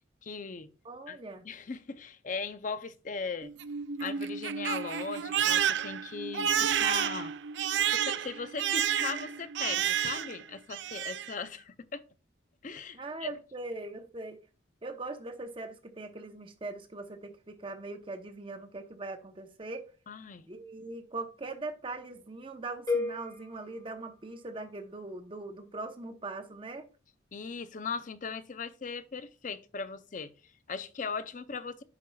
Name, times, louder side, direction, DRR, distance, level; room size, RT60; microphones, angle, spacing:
voice 1, 0.2-0.7 1.1-1.2 1.4-3.5 4.0-7.3 7.9-12.0 12.6-13.3 20.1-20.5 27.3-31.8, left 5 dB, 40° left, 0.5 m, -38 dB
voice 2, 0.8-1.4 12.9-14.4 14.8-19.9 20.5-26.9, right 2 dB, 25° right, 0.8 m, -41 dB
Crying sobbing, 3.4-10.4 10.7-11.3, right 9 dB, 65° right, 0.4 m, -30 dB
sound 1, 22.9-24.9, left 3 dB, 20° left, 1.6 m, -36 dB
10.5 x 4.7 x 2.3 m
head